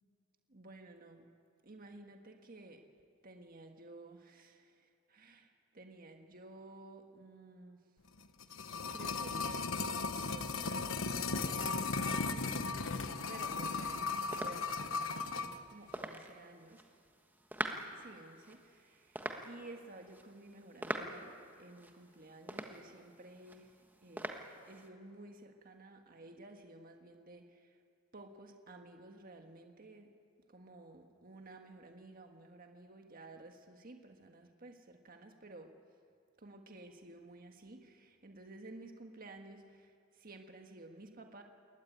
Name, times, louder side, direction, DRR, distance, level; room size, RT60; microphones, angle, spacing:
voice 1, 0.5-1.2 1.6-2.8 3.2-7.8 8.6-12.8 13.3-14.0 14.3-16.8 17.9-19.2 19.4-23.8 24.0-27.8 28.1-30.1 30.5-35.7 36.4-41.4, right 2 dB, 45° right, 4 dB, 1.6 m, -54 dB
sound 1, 8.2-15.6 15.9-16.0, left 4 dB, 80° left, 1.1 m, -36 dB
sound 2, 13.6-24.9, right 1 dB, 10° right, 1.4 m, -46 dB
22.0 x 18.5 x 9.3 m, 2.2 s
head